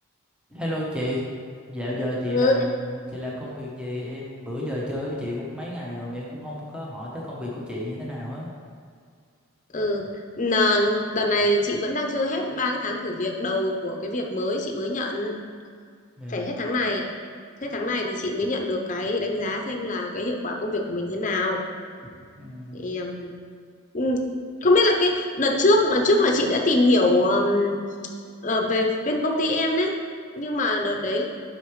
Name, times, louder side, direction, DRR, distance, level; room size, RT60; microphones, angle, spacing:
voice 1, 0.5-1.2 1.7-8.5 16.2-16.6 22.4-22.8, left 1 dB, 5° right, -5 dB, 0.9 m, -32 dB
voice 2, 9.7-10.1 10.4-15.3 16.3-17.0 17.6-21.6 22.7-23.3 23.9-24.2 24.6-27.8 28.4-29.9 30.4-31.2, left 2 dB, 35° left, 1 dB, 0.7 m, -23 dB
8.1 x 5.8 x 3.2 m, 2.1 s
head